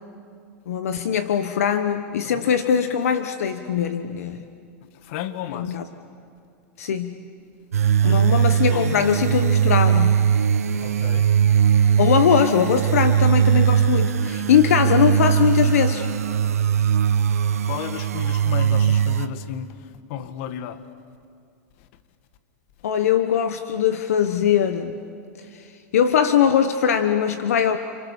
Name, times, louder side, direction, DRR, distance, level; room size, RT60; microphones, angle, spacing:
voice 1, 0.7-4.4 5.5-5.8 6.8-7.3 8.0-10.3 12.0-16.1 22.8-25.0 25.5-25.7 25.9-27.8, left 8 dB, 80° left, 10 dB, 1.2 m, -21 dB
voice 2, 2.2-2.6 4.8-5.8 8.0-9.4 10.8-11.3 17.6-20.8, left 10 dB, 60° left, 11 dB, 1.6 m, -34 dB
sound 1, 7.7-19.3, right 8 dB, 90° right, 1.1 m, -20 dB
29.5 x 28.0 x 7.2 m, 2.3 s
hypercardioid pair, 110°, 8 cm